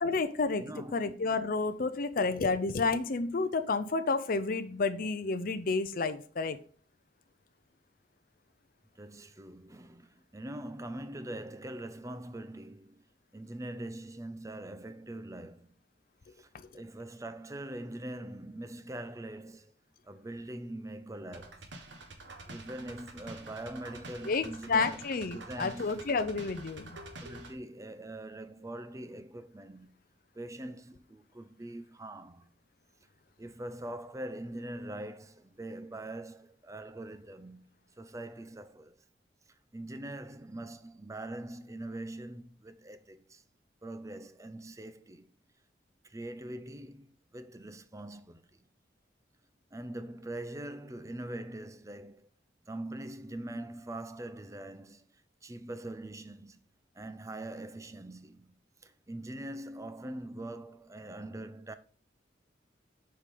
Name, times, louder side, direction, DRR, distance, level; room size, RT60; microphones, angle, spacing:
voice 1, 0.0-0.6 0.9-6.6 24.3-26.9, left 4 dB, 50° left, 0.6 m, -30 dB
voice 2, 0.6-1.1 9.0-13.0 13.3-15.7 16.4-19.7 20.0-21.7 22.5-26.0 27.2-29.9 30.3-32.5 33.4-37.6 38.0-39.0 39.7-43.4 43.8-45.3 46.0-48.4 49.7-52.3 52.7-55.1 55.4-56.6 56.9-58.5 58.8-61.7, right 1 dB, 20° right, 0.6 m, -43 dB
sound 1, 21.3-27.5, right 2 dB, 85° right, 1.5 m, -47 dB
7.1 x 4.9 x 5.2 m
head